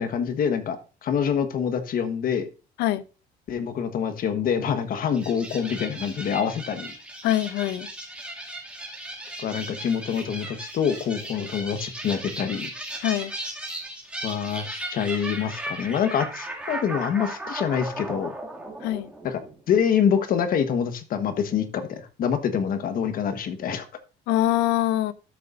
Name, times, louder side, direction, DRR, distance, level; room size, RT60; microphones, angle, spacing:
voice 1, 0.0-2.5 3.5-6.9 9.4-12.7 14.2-18.3 19.2-19.4 19.7-23.9, left 7 dB, 60° left, 1.3 m, -26 dB
sound 1, 5.1-19.8, right 1 dB, 5° right, 2.3 m, -36 dB
voice 2, 7.2-7.9 11.4-11.5 13.0-13.3 18.8-19.1 24.3-25.1, left 14 dB, 85° left, 0.6 m, -24 dB
12.5 x 6.8 x 2.6 m
cardioid pair, 110°, 17 cm